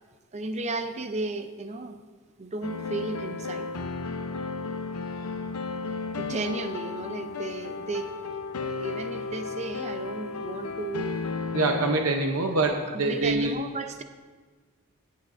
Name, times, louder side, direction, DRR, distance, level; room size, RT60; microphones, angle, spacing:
voice 1, 0.3-2.0 2.4-3.7 6.2-8.1 8.6-11.2 12.9-14.0, right 3 dB, 30° right, 8 dB, 0.6 m, -34 dB
sound 1, 2.6-12.1, left 4 dB, 85° left, 0.7 m, -34 dB
voice 2, 11.5-13.6, right 2 dB, 70° right, 3 dB, 0.8 m, -25 dB
17.0 x 8.3 x 2.6 m, 1.5 s
head